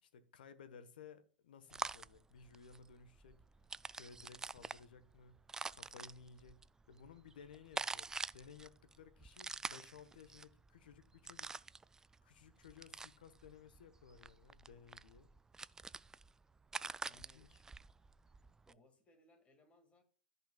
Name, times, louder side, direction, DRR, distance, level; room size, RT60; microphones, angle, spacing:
voice 1, 0.0-3.4 3.9-5.4 5.7-6.6 6.9-11.5 12.2-15.3 17.1-17.6, left 6 dB, 70° left, 1.3 m, -58 dB
sound 1, 1.7-18.7, right 4 dB, 10° right, 0.3 m, -47 dB
voice 2, 17.0-17.5 18.4-20.0, left 2 dB, 20° left, 2.3 m, -69 dB
14.5 x 5.7 x 2.4 m
hypercardioid pair, 100°, 5 cm